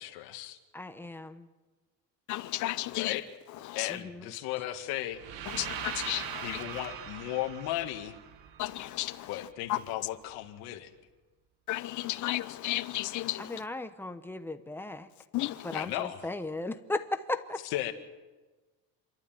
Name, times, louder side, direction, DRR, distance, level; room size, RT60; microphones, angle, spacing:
voice 1, 0.0-0.6 2.9-3.2 3.8-5.2 6.4-8.2 9.3-10.9 15.7-16.3 17.6-17.9, left 14 dB, 80° left, 2.1 m, -35 dB
voice 2, 0.7-1.5 3.9-4.2 13.5-15.1 15.7-17.6, left 2 dB, 5° left, 0.9 m, -36 dB
voice 3, 2.3-3.2 3.5-4.0 5.5-6.6 8.6-9.9 11.7-13.7 15.3-15.8, left 16 dB, 50° left, 0.9 m, -34 dB
sound 1, 5.1-9.2, right 9 dB, 65° right, 1.5 m, -41 dB
27.5 x 12.5 x 9.1 m
cardioid pair, 160°, 37 cm